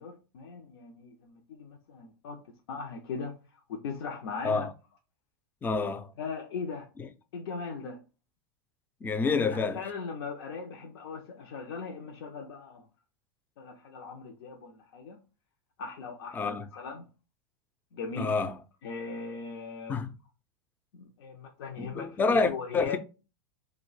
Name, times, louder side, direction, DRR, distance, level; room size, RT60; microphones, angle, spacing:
voice 1, 0.0-2.4 2.7-4.7 6.2-6.9 7.3-8.0 9.2-12.9 13.6-15.2 15.8-17.1 17.9-18.4 18.8-20.0 20.9-23.0, left 5 dB, 80° left, 0.5 m, -39 dB
voice 2, 5.6-6.1 9.0-9.8 16.3-16.6 18.2-18.5 19.9-20.1 21.8-23.0, left 4 dB, 15° left, 0.3 m, -28 dB
2.6 x 2.1 x 3.9 m
hypercardioid pair, 115°, 13 cm